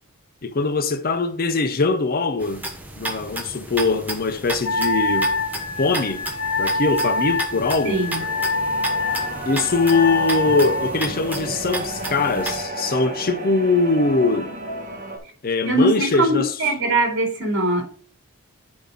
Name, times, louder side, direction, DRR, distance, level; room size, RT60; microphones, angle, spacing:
voice 1, 0.4-2.6 3.0-5.3 5.8-6.3 6.6-8.0 9.5-14.6 15.4-16.5, left 3 dB, 40° left, 0.6 m, -22 dB
sound 1, 2.4-12.6, right 2 dB, 10° right, 1.1 m, -33 dB
Wind instrument woodwind instrument, 4.6-11.0, left 3 dB, 85° left, 1.7 m, -25 dB
voice 2, 7.8-8.2 15.7-17.9, right 2 dB, 55° right, 2.7 m, -21 dB
sound 2, 7.9-15.2, right 1 dB, 35° right, 1.6 m, -33 dB
9.2 x 4.7 x 4.0 m
head